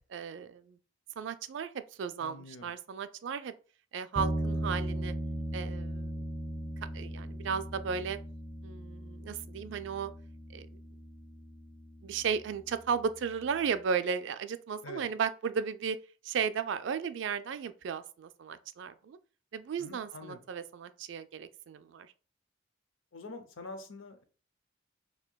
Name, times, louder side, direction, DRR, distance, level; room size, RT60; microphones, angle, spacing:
voice 1, 0.1-0.8 1.2-3.5 3.9-5.1 5.5-6.2 6.9-8.2 8.6-10.1 10.5-10.7 12.0-16.0 16.2-19.2 19.5-22.1, right 6 dB, 65° right, 0.3 m, -35 dB
voice 2, 2.2-2.7 14.8-15.0 19.8-20.4 23.1-24.2, left 2 dB, 75° left, 0.7 m, -46 dB
sound 1, 4.1-13.6, right 1 dB, 15° left, 0.7 m, -38 dB
4.4 x 2.8 x 2.2 m
head